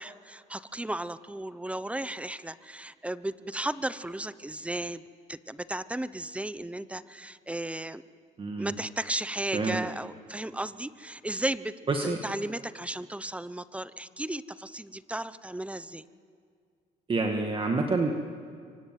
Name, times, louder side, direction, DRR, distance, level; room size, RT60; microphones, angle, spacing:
voice 1, 0.0-5.0 5.3-8.0 8.6-16.0, right 1 dB, 5° right, 15 dB, 0.8 m, -35 dB
voice 2, 8.4-8.7 9.5-9.8 11.9-12.2 17.1-18.1, right 3 dB, 30° right, 3 dB, 1.9 m, -27 dB
24.5 x 24.5 x 9.3 m, 2.2 s
cardioid pair, 110°, 17 cm